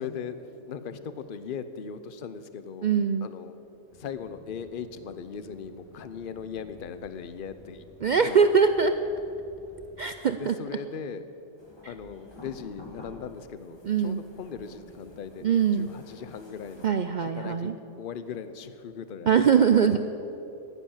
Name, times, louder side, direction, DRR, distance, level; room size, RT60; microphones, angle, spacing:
voice 1, 0.0-2.9 3.2-3.6 3.9-7.9 8.1-8.5 10.3-11.2 11.8-16.9 17.2-19.6, left 6 dB, 45° left, 12 dB, 0.8 m, -39 dB
voice 2, 2.8-3.3 8.0-8.9 10.0-10.5 13.8-14.2 15.4-15.9 16.8-17.7 19.3-20.0, right 6 dB, 85° right, 9 dB, 0.4 m, -22 dB
sound 1, 3.9-10.0, left 1 dB, 85° left, 4.0 m, -54 dB
sound 2, 11.6-16.9, equal, 20° left, 1.5 m, -50 dB
15.5 x 11.0 x 7.3 m, 2.9 s
omnidirectional pair, 1.4 m